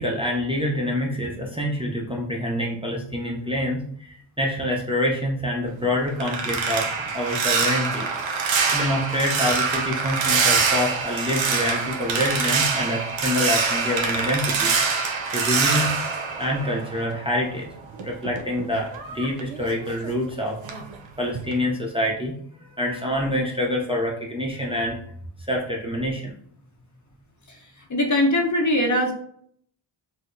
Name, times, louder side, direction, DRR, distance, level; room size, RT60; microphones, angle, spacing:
voice 1, 0.0-8.1 8.7-14.7 15.3-16.0 16.4-17.7 18.0-20.9 21.2-22.3 22.8-25.0 25.5-26.3, left 1 dB, 10° right, -2 dB, 0.6 m, -26 dB
sound 1, 5.7-17.3 17.6-20.3 20.6-21.0 21.3-21.6, right 5 dB, 65° right, 0.7 m, -25 dB
voice 2, 27.9-29.1, left 1 dB, 40° left, 2 dB, 0.7 m, -21 dB
4.6 x 2.0 x 2.6 m, 0.65 s
cardioid pair, 70°, 49 cm